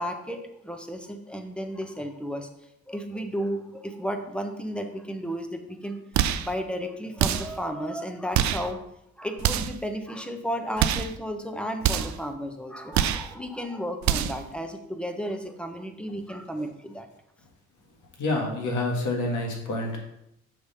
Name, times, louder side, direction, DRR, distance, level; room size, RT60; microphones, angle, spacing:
voice 1, 0.0-2.5 2.9-6.0 6.4-8.8 9.2-17.1, equal, 5° left, 5 dB, 0.8 m, -33 dB
sound 1, 6.1-6.5 7.2-7.6 8.3-8.7 9.4-9.8 10.8-11.2 11.8-12.2 12.9-13.3 14.0-14.5, right 10 dB, 70° right, 0.5 m, -25 dB
voice 2, 18.2-20.0, left 2 dB, 75° left, 1 dB, 1.7 m, -27 dB
6.7 x 3.3 x 5.5 m, 0.80 s
cardioid pair, 90°, 30 cm